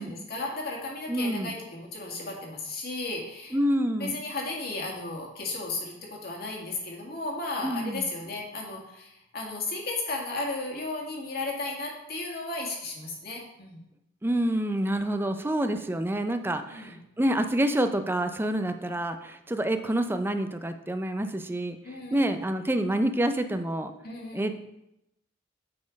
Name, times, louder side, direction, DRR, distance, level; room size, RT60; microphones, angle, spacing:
voice 1, 0.0-3.6 4.0-13.8 16.7-17.0 21.8-22.4 24.0-24.5, left 2 dB, 55° left, -1 dB, 1.9 m, -34 dB
voice 2, 1.1-1.5 3.5-4.2 7.6-8.1 14.2-23.9 24.3-24.7, right 1 dB, 10° right, 8 dB, 0.5 m, -28 dB
8.6 x 4.2 x 5.2 m, 0.86 s
head